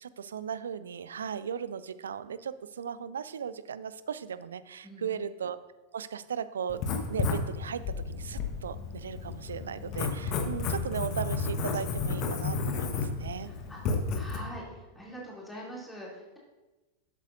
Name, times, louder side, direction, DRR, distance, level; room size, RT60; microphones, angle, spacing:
voice 1, 0.0-5.6 5.9-6.8 7.1-13.5, right 7 dB, 65° right, 15 dB, 0.4 m, -37 dB
voice 2, 4.8-5.3 13.2-16.4, equal, 5° left, -4 dB, 2.9 m, -44 dB
Writing, 6.7-14.4, left 4 dB, 40° left, 1.2 m, -32 dB
12.0 x 8.1 x 2.6 m, 1.1 s
figure-of-eight pair, 90°, 0 cm